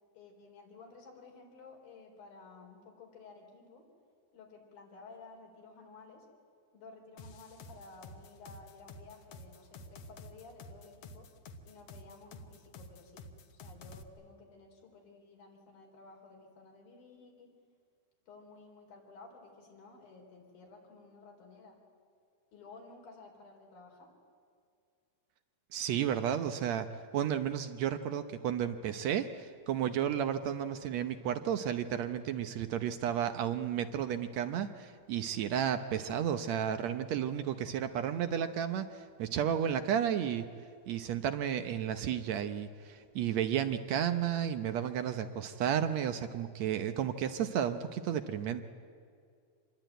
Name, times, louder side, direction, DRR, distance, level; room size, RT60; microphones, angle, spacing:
voice 1, 0.1-3.9 4.3-6.3 6.7-11.3 11.6-17.5 18.3-21.8 22.5-24.1, left 3 dB, 90° left, 0 dB, 5.9 m, -54 dB
sound 1, 7.2-14.0, left 2 dB, 60° left, 1.8 m, -50 dB
voice 2, 25.7-26.9 27.1-40.5 40.9-48.6, right 9 dB, 70° right, 9 dB, 1.7 m, -32 dB
26.5 x 21.5 x 9.2 m, 2.3 s
omnidirectional pair, 4.1 m